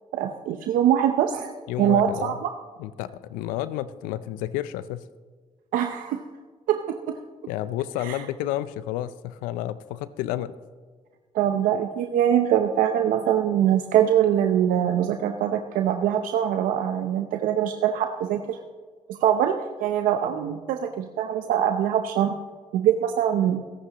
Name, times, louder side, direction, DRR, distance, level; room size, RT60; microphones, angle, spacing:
voice 1, 0.1-1.5 1.8-2.5 5.7-6.2 6.7-7.2 8.0-8.2 11.3-18.6 19.1-22.4 22.7-23.6, right 10 dB, 80° right, 6 dB, 0.7 m, -23 dB
voice 2, 1.7-2.4 2.8-5.0 7.5-10.5, left 13 dB, 90° left, 15 dB, 0.5 m, -31 dB
21.5 x 11.5 x 3.0 m, 1.5 s
supercardioid pair, 60°, 14 cm